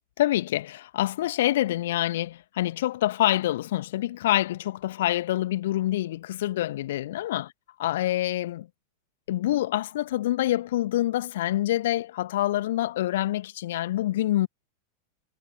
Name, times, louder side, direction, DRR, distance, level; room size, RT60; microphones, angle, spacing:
voice 1, 0.2-7.4 7.8-8.7 9.3-14.5, left 14 dB, 55° left, 1.7 m, -26 dB
figure-of-eight pair, 90°, 0 cm